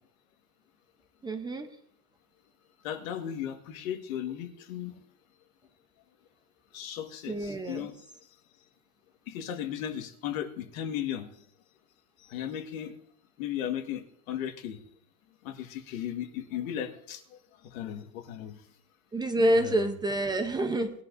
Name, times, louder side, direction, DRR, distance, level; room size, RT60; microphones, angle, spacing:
voice 1, 1.2-1.7 7.3-7.9 19.1-20.9, right 1 dB, 10° right, 6 dB, 0.7 m, -27 dB
voice 2, 2.8-4.9 6.7-8.0 9.3-11.3 12.3-13.0 13.4-14.8 15.4-17.2 17.7-18.6 19.6-19.9, left 10 dB, 70° left, 6 dB, 1.7 m, -36 dB
20.0 x 11.0 x 2.6 m, 0.67 s
supercardioid pair, 150°, 42 cm